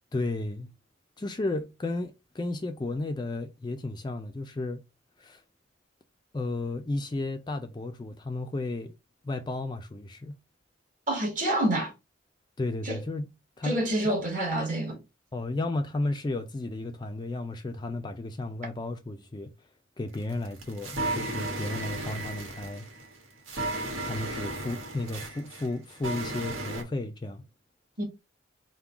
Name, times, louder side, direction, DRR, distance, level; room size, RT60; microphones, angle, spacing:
voice 1, 0.1-0.7 1.2-4.8 5.2-5.4 6.3-8.9 9.2-10.4 12.6-13.3 13.6-14.2 15.3-19.7 20.0-22.8 24.0-27.4, left 2 dB, 20° left, 0.4 m, -33 dB
voice 2, 11.1-11.9 12.8-13.0 13.6-15.0 28.0-28.1, right 1 dB, 40° right, 1.4 m, -27 dB
sound 1, 20.1-26.8, right 2 dB, 80° right, 1.3 m, -35 dB
3.7 x 2.2 x 4.4 m
head